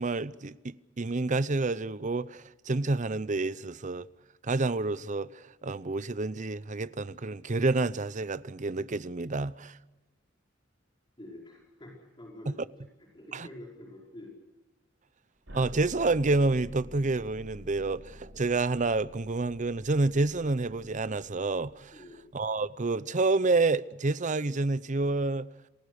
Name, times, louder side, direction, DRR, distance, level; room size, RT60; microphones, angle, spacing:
voice 1, 0.0-4.1 4.4-9.7 12.5-12.6 13.3-13.5 15.5-22.0 22.3-25.5, right 3 dB, 40° right, 0.7 m, -29 dB
voice 2, 11.2-12.9 13.1-14.3 21.9-22.2, left 1 dB, 25° left, 5.3 m, -47 dB
sound 1, 15.5-22.4, left 1 dB, 85° right, 5.3 m, -49 dB
28.5 x 20.5 x 6.5 m
head